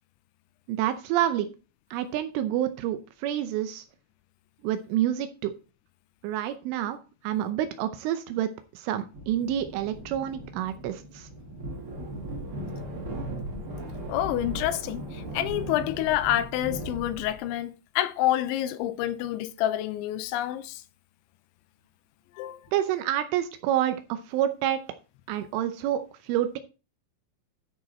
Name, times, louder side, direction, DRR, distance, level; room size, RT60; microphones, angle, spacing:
voice 1, 0.7-1.5 1.9-3.8 4.6-5.5 6.2-11.3 22.7-24.8 25.3-26.6, right 11 dB, 85° right, 3.3 m, -28 dB
sound 1, 9.1-17.5, right 1 dB, 35° right, 2.3 m, -37 dB
voice 2, 14.1-20.8 22.4-22.6, left 13 dB, 80° left, 3.0 m, -28 dB
13.0 x 5.3 x 4.2 m
omnidirectional pair, 5.6 m